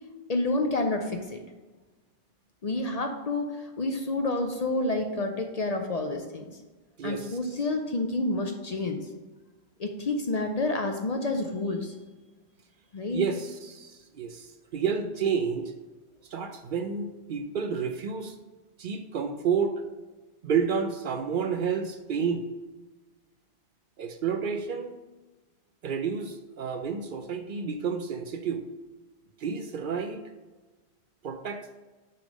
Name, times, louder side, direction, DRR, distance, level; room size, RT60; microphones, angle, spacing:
voice 1, 0.3-1.4 2.6-6.4 7.0-9.0 9.8-11.9 12.9-13.2, left 2 dB, 45° left, 4 dB, 0.6 m, -29 dB
voice 2, 7.0-7.4 13.1-15.7 16.3-18.4 18.8-19.7 20.4-22.5 24.0-24.9 25.8-28.6 29.4-30.3 31.2-31.8, right 6 dB, 60° right, 6 dB, 0.6 m, -30 dB
6.5 x 3.6 x 5.1 m, 1.2 s
omnidirectional pair, 1.1 m